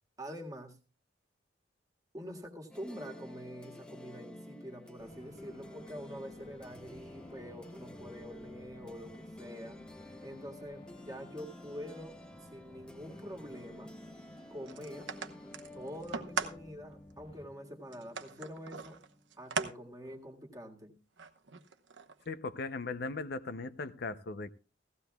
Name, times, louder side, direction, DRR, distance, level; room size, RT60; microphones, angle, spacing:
voice 1, 0.2-0.8 2.1-9.8 10.2-13.9 14.5-15.1 15.7-19.0 19.4-20.9, equal, 20° right, 1.7 m, -46 dB
sound 1, 2.7-19.3, left 1 dB, 5° left, 0.8 m, -52 dB
sound 2, 5.0-17.5, left 1 dB, 30° left, 1.2 m, -55 dB
sound 3, 14.7-16.6 17.1-17.2 17.9-19.7 20.1-20.2 21.2-22.3, right 5 dB, 75° right, 1.0 m, -39 dB
voice 2, 22.3-24.5, left 3 dB, 55° left, 0.6 m, -38 dB
17.0 x 15.0 x 2.3 m
head